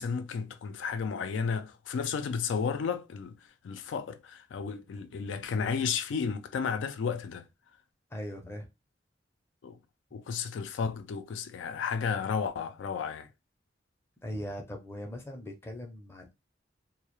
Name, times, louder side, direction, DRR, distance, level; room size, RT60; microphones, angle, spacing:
voice 1, 0.0-3.4 3.6-7.5 9.6-9.8 10.1-13.3, left 6 dB, 90° left, 0.3 m, -33 dB
voice 2, 8.1-8.7 14.2-16.4, equal, 15° left, 0.5 m, -40 dB
2.3 x 2.0 x 2.9 m
head